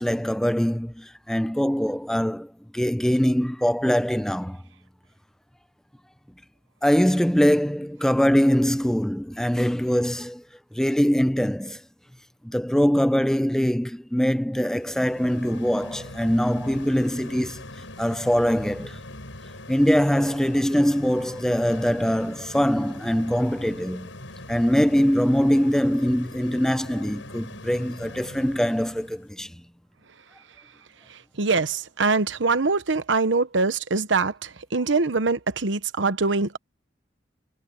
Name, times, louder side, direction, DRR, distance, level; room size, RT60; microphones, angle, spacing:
voice 1, 0.0-4.6 6.8-10.4 10.7-11.8 12.4-17.6 18.0-19.0 19.7-24.1 24.5-29.5, equal, 5° left, 0.5 m, -23 dB
sound 1, 14.7-29.2, left 1 dB, 90° left, 7.1 m, -42 dB
voice 2, 31.1-36.6, right 4 dB, 75° right, 1.1 m, -23 dB
head